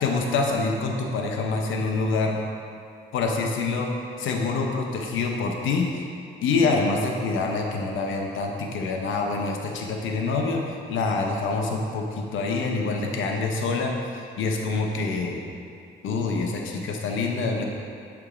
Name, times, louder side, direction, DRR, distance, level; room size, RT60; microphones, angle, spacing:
voice 1, 0.0-2.4 3.1-3.9 4.2-6.0 6.4-15.4 16.0-17.6, left 3 dB, 80° left, 1 dB, 0.9 m, -26 dB
7.9 x 3.6 x 4.9 m, 2.5 s
cardioid pair, 90°, 20 cm